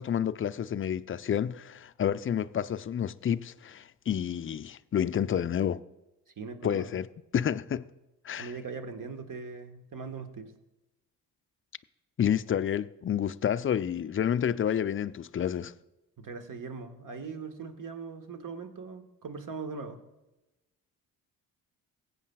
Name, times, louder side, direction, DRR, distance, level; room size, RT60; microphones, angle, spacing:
voice 1, 0.0-5.8 6.6-7.1 7.3-7.9 8.2-8.5 12.2-15.7, left 9 dB, 30° left, 0.5 m, -29 dB
voice 2, 6.4-6.9 8.4-10.5 16.2-20.0, right 4 dB, 45° right, 1.6 m, -40 dB
21.5 x 8.5 x 2.3 m
hypercardioid pair, 45°, 46 cm